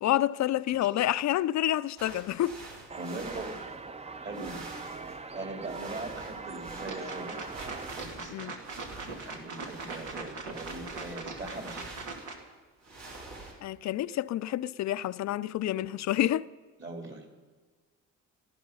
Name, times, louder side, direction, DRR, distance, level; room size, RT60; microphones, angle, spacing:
voice 1, 0.0-2.6 8.3-8.5 13.6-16.5, left 13 dB, 65° left, 0.5 m, -28 dB
sound 1, 2.0-4.0 4.3-13.5, right 2 dB, 65° right, 5.4 m, -47 dB
sound 2, 2.9-7.9, right 4 dB, 20° right, 0.7 m, -41 dB
voice 2, 3.0-3.6 4.2-4.7 5.3-7.4 7.9-8.6 9.0-11.9 16.8-17.3, right 2 dB, 40° right, 3.9 m, -40 dB
sound 3, 6.8-12.4, right 3 dB, 80° right, 2.5 m, -41 dB
18.5 x 13.0 x 5.5 m
cardioid pair, 90°, 30 cm